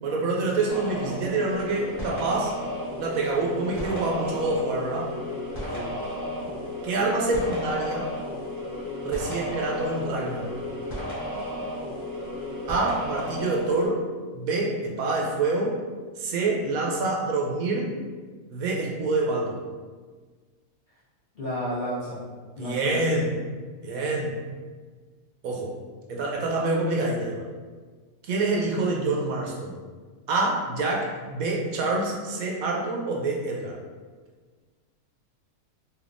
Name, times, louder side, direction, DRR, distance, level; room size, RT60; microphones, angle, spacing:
voice 1, 0.0-2.6 3.0-5.1 6.4-6.5 6.8-8.1 9.0-10.5 12.7-14.0 14.3-15.8 16.2-17.9 18.5-19.6 22.6-23.4 23.8-24.4 25.4-25.7 26.1-27.5 28.2-29.8 30.3-33.8, right 2 dB, 70° right, -2 dB, 1.0 m, -26 dB
sound 1, 0.7-13.9, left 1 dB, 20° left, 1.0 m, -33 dB
voice 2, 21.4-22.2 22.6-23.3, equal, 50° left, -10 dB, 0.7 m, -32 dB
3.4 x 2.8 x 2.5 m, 1.5 s
omnidirectional pair, 1.6 m